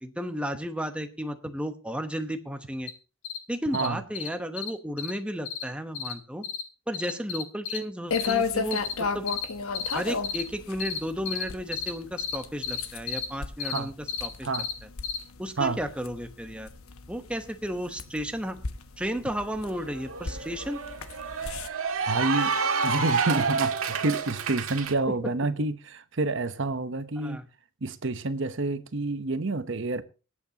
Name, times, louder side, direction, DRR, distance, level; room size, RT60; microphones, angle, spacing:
voice 1, 0.0-2.9 3.5-6.4 6.9-9.3 9.9-13.9 14.2-14.5 15.4-16.7 17.1-18.6 19.0-20.8 27.2-27.4, equal, 5° right, 1.0 m, -33 dB
sound 1, 2.9-3.0 3.2-3.4 3.7-3.9 4.1-4.3 4.6-4.7 5.0-5.1 5.4-5.6 5.9-6.1 6.4-6.6 6.9-7.8 8.1-8.3 8.7-8.9 9.3-9.4 9.7-9.9 10.2-10.4 10.8-11.0 11.3-11.4 11.7-11.9 12.2-12.4 12.6-12.8 13.1-13.3 13.6-13.8 14.1-14.3 14.5-14.7 15.0-15.2, left 8 dB, 65° left, 2.5 m, -31 dB
voice 2, 3.7-4.0 13.6-13.9 14.4-14.7 15.6-15.8 22.1-22.5 22.8-27.4 27.8-30.0, right 3 dB, 60° right, 0.9 m, -28 dB
sound 2, 8.1-21.7, left 5 dB, 85° left, 1.1 m, -34 dB
Cheering / Applause, 19.1-19.2 19.5-24.9, right 5 dB, 80° right, 1.6 m, -29 dB
23.5 x 8.5 x 2.9 m
head